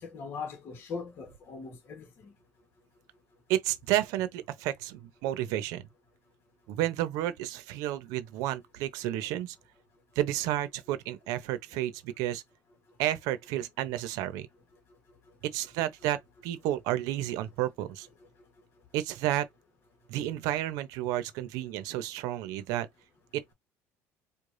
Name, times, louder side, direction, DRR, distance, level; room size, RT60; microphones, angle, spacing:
voice 1, 0.0-2.3, left 5 dB, 40° left, 1.2 m, -40 dB
voice 2, 3.5-5.8 6.7-9.6 10.2-12.4 13.0-14.5 15.5-18.1 18.9-19.5 20.1-22.9 23.3-23.4, right 13 dB, 75° right, 0.8 m, -31 dB
4.9 x 2.3 x 2.6 m
cardioid pair, 150°, 6 cm